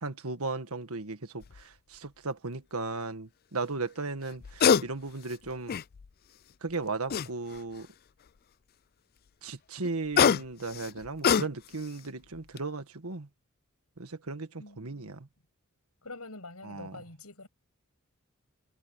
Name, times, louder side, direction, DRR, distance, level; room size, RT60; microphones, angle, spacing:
voice 1, 0.0-5.8 6.6-7.9 9.4-13.3 14.0-15.3 16.6-16.9, right 3 dB, 80° right, 1.7 m, -36 dB
sound 1, 1.4-1.6 4.3-4.9 5.3-6.1 7.1-7.8 9.8-11.9 12.3-12.6, left 7 dB, 45° left, 0.4 m, -25 dB
voice 2, 14.6-15.1 16.0-17.5, left 2 dB, 90° left, 7.8 m, -46 dB
head